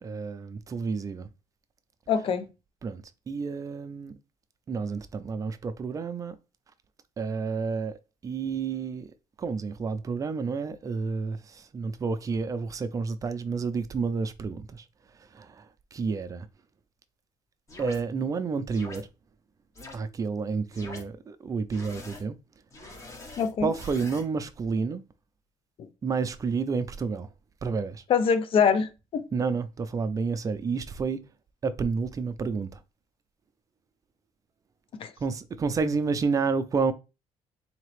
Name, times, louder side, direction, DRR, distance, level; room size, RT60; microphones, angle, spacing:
voice 1, 0.0-1.3 2.8-4.1 4.7-6.4 7.2-8.0 8.2-9.1 9.4-14.8 15.3-15.7 15.9-16.5 17.8-19.1 19.9-22.4 23.6-25.0 26.0-27.3 27.6-28.0 29.3-31.3 31.6-32.8 35.2-36.9, right 5 dB, 30° right, 0.5 m, -30 dB
voice 2, 2.1-2.5 23.4-23.7 25.8-25.9 28.1-29.2 35.0-35.1, left 6 dB, 50° left, 0.6 m, -24 dB
sound 1, 17.7-18.0 18.7-19.0 19.8-20.0 20.7-21.0 21.7-22.2 22.7-24.2, left 2 dB, 25° left, 1.1 m, -44 dB
4.0 x 2.9 x 3.2 m
cardioid pair, 120°, 11 cm